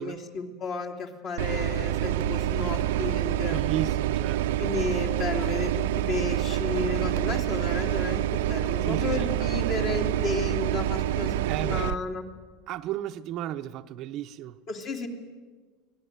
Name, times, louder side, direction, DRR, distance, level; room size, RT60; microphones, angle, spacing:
voice 1, 0.0-3.6 4.6-12.2 14.7-15.1, left 4 dB, 40° left, 3.0 m, -33 dB
sound 1, 1.4-11.9, right 12 dB, 85° right, 0.7 m, -27 dB
voice 2, 3.5-4.6 8.8-9.7 11.5-11.9 12.7-14.6, right 11 dB, 45° right, 0.7 m, -34 dB
23.5 x 19.0 x 9.3 m
supercardioid pair, 150°, 0 cm